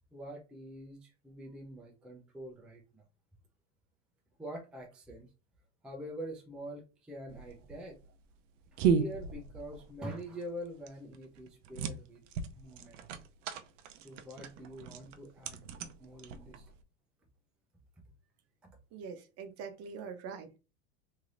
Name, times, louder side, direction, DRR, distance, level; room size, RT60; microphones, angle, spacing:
voice 1, 0.1-3.0 4.4-5.3 5.8-8.0 8.7-12.2 12.5-13.0 14.0-15.7 16.0-16.7 18.6-18.7, equal, 5° right, 0.4 m, -45 dB
sound 1, 7.3-16.8, right 6 dB, 80° right, 0.6 m, -36 dB
voice 2, 18.9-20.6, right 6 dB, 40° right, 0.7 m, -43 dB
3.2 x 2.7 x 2.5 m
supercardioid pair, 135°, 37 cm